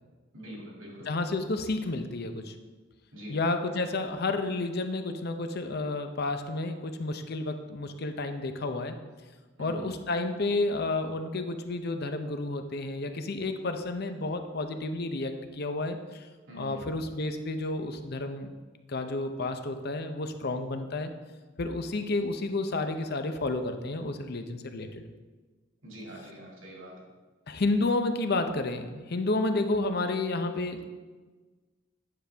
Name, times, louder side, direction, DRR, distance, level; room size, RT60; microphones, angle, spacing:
voice 1, 0.3-1.1 3.1-3.4 9.6-9.9 16.5-16.9 25.8-26.9, right 1 dB, 75° right, -3 dB, 2.5 m, -44 dB
voice 2, 1.0-2.5 3.3-9.0 9.6-16.3 16.5-18.5 18.9-21.1 21.6-25.0 27.5-30.8, left 2 dB, 50° left, 7 dB, 0.7 m, -31 dB
9.7 x 6.6 x 3.4 m, 1.3 s
head